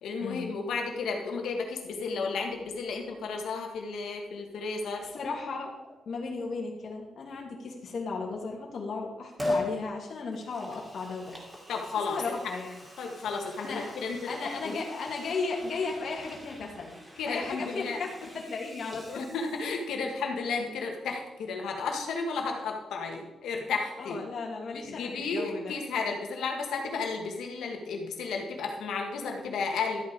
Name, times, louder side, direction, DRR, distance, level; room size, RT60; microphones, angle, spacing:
voice 1, 0.0-5.1 11.7-12.3 13.0-14.7 17.2-18.0 19.1-24.2 24.7-30.0, left 4 dB, 85° left, 2 dB, 2.2 m, -33 dB
voice 2, 5.1-5.7 6.1-11.3 12.1-12.7 13.6-13.9 14.3-17.0 17.3-19.2 24.0-25.7, left 4 dB, 55° left, -2 dB, 2.6 m, -35 dB
Liquid, 9.4-9.7 10.3-20.0 20.3-20.4, left 1 dB, 15° right, 3.1 m, -40 dB
13.0 x 8.6 x 4.8 m, 1.1 s
cardioid pair, 115°, 0 cm